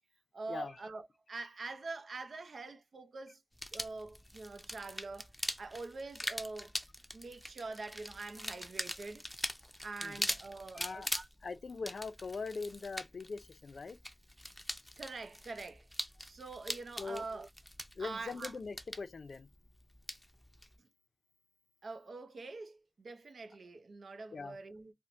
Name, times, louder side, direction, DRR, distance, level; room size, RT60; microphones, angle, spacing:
voice 1, 0.3-3.4 3.7-5.3 5.6-6.7 7.1-9.3 9.8-11.3 15.0-15.9 16.2-17.5 18.0-18.5 20.8-20.9 21.8-24.9, right 3 dB, 85° right, 0.5 m, -45 dB
sound 1, 3.5-20.7, equal, 5° left, 0.5 m, -43 dB
voice 2, 10.8-11.1 11.4-14.0 17.0-17.2 18.0-19.5 24.3-24.6, left 4 dB, 85° left, 0.4 m, -41 dB
4.3 x 2.1 x 2.5 m
wide cardioid pair, 90°, 0 cm